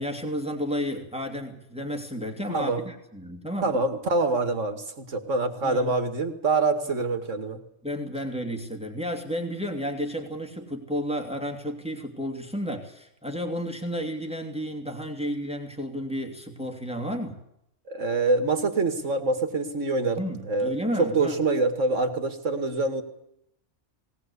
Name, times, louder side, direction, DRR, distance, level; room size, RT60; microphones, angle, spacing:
voice 1, 0.0-3.7 5.6-5.9 7.8-17.4 20.2-21.4, equal, 5° right, 3 dB, 2.6 m, -32 dB
voice 2, 2.5-2.8 3.6-7.6 17.9-23.0, right 3 dB, 75° right, 8 dB, 2.4 m, -25 dB
19.5 x 18.5 x 8.4 m, 0.78 s
omnidirectional pair, 1.3 m